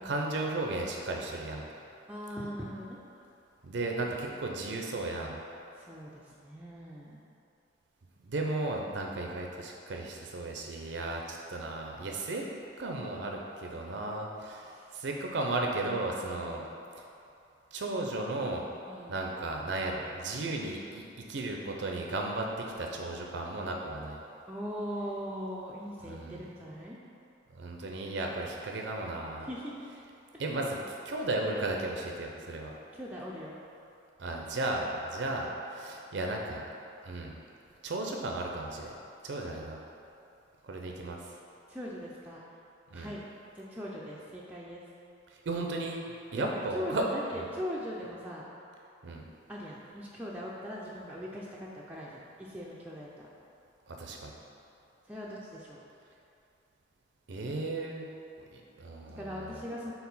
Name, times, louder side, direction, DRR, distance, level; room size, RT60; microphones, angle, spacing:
voice 1, 0.0-1.7 3.6-5.4 8.2-12.4 12.8-16.6 17.0-17.1 17.7-18.7 19.1-21.0 21.3-24.2 26.0-26.4 27.5-29.5 30.4-32.7 34.2-36.6 37.0-37.4 37.8-38.9 39.2-39.8 40.6-41.3 42.9-43.1 45.3-46.0 46.3-47.1 47.3-47.5 49.0-49.2 53.9-54.4 57.3-58.1 58.5-59.6, right 2 dB, 65° right, 0 dB, 0.5 m, -35 dB
voice 2, 2.1-3.0 5.8-7.2 14.7-14.8 16.3-16.7 18.9-19.1 24.5-27.0 29.4-29.9 30.3-30.4 32.9-33.6 41.7-42.4 42.9-43.2 43.6-44.8 46.4-48.4 49.5-53.3 55.0-55.8 59.1-59.9, equal, 5° right, -6 dB, 0.4 m, -40 dB
4.7 x 3.9 x 5.4 m, 2.6 s
head